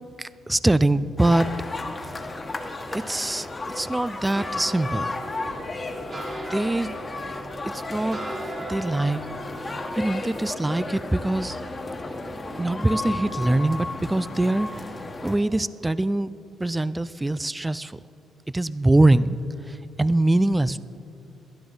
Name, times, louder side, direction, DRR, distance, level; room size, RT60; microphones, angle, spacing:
voice 1, 0.2-1.5 2.9-3.5 3.7-5.1 6.5-6.9 7.6-8.2 8.6-9.2 9.6-11.6 12.6-14.9 15.2-16.3 16.6-18.0 18.5-19.4 19.7-20.8, right 2 dB, 10° right, 17 dB, 0.4 m, -23 dB
sound 1, 1.2-15.4, left 2 dB, 25° left, 1.5 m, -34 dB
sound 2, 4.3-13.6 13.9-15.0 15.3-15.7 16.0-16.1, right 2 dB, 35° right, 2.3 m, -41 dB
21.5 x 12.5 x 3.9 m, 2.8 s
cardioid pair, 90°, 0 cm